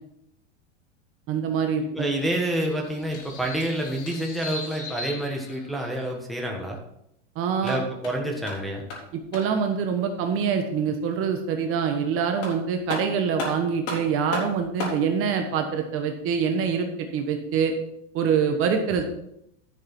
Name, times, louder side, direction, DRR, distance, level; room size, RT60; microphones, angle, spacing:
voice 1, 1.3-2.1 7.3-7.8 9.1-17.7 18.1-19.0, right 6 dB, 35° right, 5 dB, 1.3 m, -25 dB
voice 2, 1.9-6.8 7.6-8.8, right 1 dB, ahead, -1 dB, 1.5 m, -28 dB
sound 1, 2.1-6.1, left 3 dB, 75° left, 2.8 m, -40 dB
sound 2, 3.1-4.4 7.4-9.7 11.9-12.0 12.4-15.0, left 2 dB, 45° left, 3.9 m, -36 dB
11.5 x 6.7 x 4.5 m, 0.77 s
supercardioid pair, 140°, 36 cm